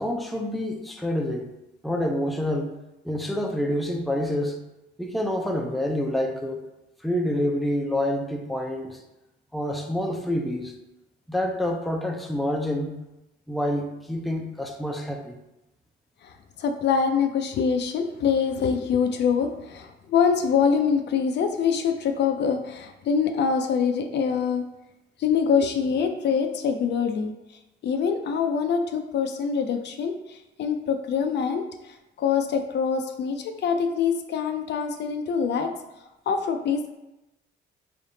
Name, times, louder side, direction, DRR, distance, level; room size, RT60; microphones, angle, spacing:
voice 1, 0.0-1.5 1.8-2.7 3.0-4.6 5.0-6.6 7.0-9.0 9.5-10.7 11.3-12.9 13.5-15.4, left 1 dB, ahead, 2 dB, 0.5 m, -27 dB
voice 2, 16.2-24.7 25.2-27.3 27.8-35.7 36.3-37.0, left 6 dB, 60° left, 6 dB, 0.4 m, -25 dB
3.8 x 3.3 x 2.7 m, 0.95 s
cardioid pair, 90°, 20 cm